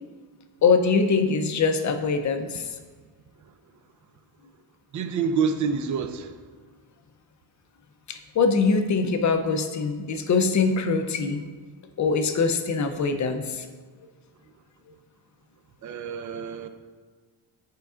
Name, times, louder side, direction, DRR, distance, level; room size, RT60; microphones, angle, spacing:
voice 1, 0.6-2.6 8.1-11.5 12.0-13.7, left 4 dB, 40° left, 7 dB, 0.5 m, -23 dB
voice 2, 4.9-6.4 15.8-16.7, right 6 dB, 40° right, 8 dB, 0.5 m, -27 dB
9.2 x 4.6 x 2.4 m, 1.5 s
cardioid pair, 140°, 48 cm